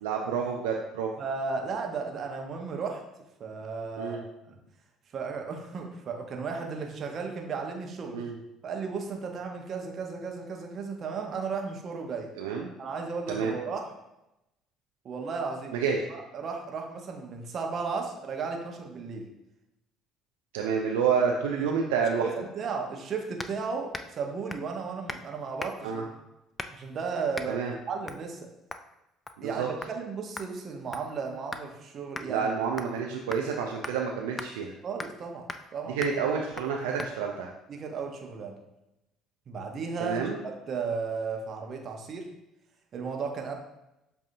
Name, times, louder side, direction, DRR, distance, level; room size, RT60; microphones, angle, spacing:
voice 1, 0.0-1.1 4.0-4.2 8.1-8.4 12.4-12.7 13.3-13.6 15.7-16.0 20.5-22.3 25.8-26.0 27.5-27.7 29.4-29.7 32.3-34.7 36.0-37.5 40.0-40.4, right 6 dB, 80° right, 0 dB, 0.4 m, -29 dB
voice 2, 1.2-3.0 3.4-4.6 5.1-8.2 8.6-12.3 12.8-13.9 15.0-15.8 16.1-19.3 21.5-21.6 22.2-26.0 26.7-28.5 29.4-32.5 34.8-35.5 35.7-36.0 37.7-38.6 39.5-40.2 40.7-42.3 42.9-43.5, right 5 dB, 50° right, 3 dB, 0.8 m, -34 dB
sound 1, 23.4-23.6 23.9-24.2 24.5-24.7 25.1-25.3 25.6-25.9 26.6-26.9 27.3-27.5 28.1-28.3 28.7-28.9 29.3-29.5 29.8-29.9 30.4-31.7 32.2-32.3 32.8-33.0 33.3-33.5 33.8-34.0 34.4-34.5 35.0-35.2 35.5-35.7 36.0-36.2 36.6-36.7 37.0-37.1, left 3 dB, 25° left, 0.3 m, -39 dB
7.5 x 2.7 x 2.6 m, 0.91 s
hypercardioid pair, 60°, 0 cm